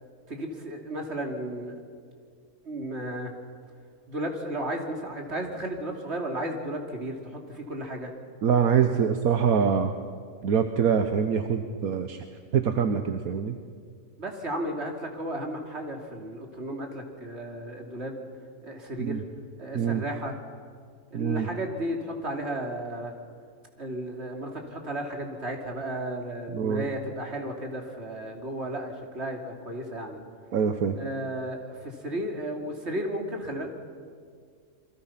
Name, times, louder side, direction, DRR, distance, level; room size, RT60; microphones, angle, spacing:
voice 1, 0.3-1.7 2.6-3.3 4.1-8.1 14.2-18.2 18.6-19.2 19.6-20.4 21.1-23.1 23.8-30.2 30.9-33.7, right 1 dB, 45° right, 1 dB, 3.2 m, -34 dB
voice 2, 8.4-9.9 10.4-12.2 12.5-13.5 19.0-19.2 19.7-20.0 21.1-21.5 26.5-26.9 30.5-31.0, right 7 dB, 75° right, 7 dB, 1.4 m, -24 dB
28.0 x 23.0 x 5.9 m, 2.1 s
omnidirectional pair, 1.6 m